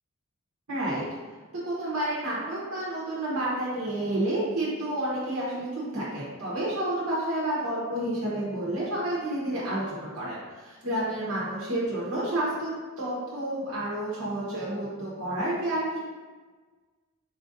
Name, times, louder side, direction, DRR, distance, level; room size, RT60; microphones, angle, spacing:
voice 1, 0.7-1.1 1.6-12.7 13.0-16.0, right 1 dB, 80° right, -7 dB, 0.9 m, -30 dB
4.3 x 2.5 x 2.5 m, 1.4 s
head